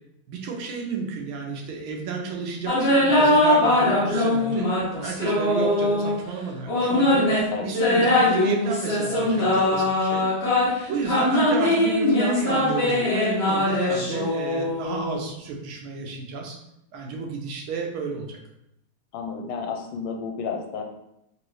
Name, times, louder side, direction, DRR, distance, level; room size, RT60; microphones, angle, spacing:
voice 1, 0.3-4.7 5.0-7.3 7.6-10.3 10.9-16.6 16.9-18.4, right 4 dB, 80° right, 0 dB, 1.6 m, -31 dB
sound 1, 2.7-6.2 6.7-15.2, left 1 dB, 45° left, 0.9 m, -21 dB
voice 2, 19.1-20.8, left 5 dB, 85° left, 3 dB, 1.5 m, -31 dB
4.0 x 2.7 x 3.1 m, 0.81 s
omnidirectional pair, 2.3 m